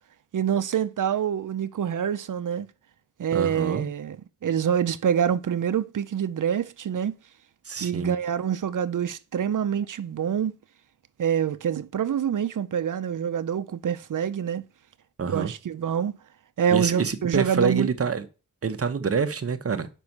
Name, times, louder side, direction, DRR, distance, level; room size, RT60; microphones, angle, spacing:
voice 1, 0.3-2.7 3.2-4.2 4.4-7.1 7.8-10.5 11.2-14.6 15.3-16.2 16.6-17.9, right 8 dB, 70° right, 0.6 m, -26 dB
voice 2, 3.3-3.9 7.6-8.1 15.2-15.5 16.7-18.3 18.6-19.9, right 5 dB, 45° right, 0.9 m, -26 dB
6.8 x 5.4 x 5.9 m
wide cardioid pair, 135°, 33 cm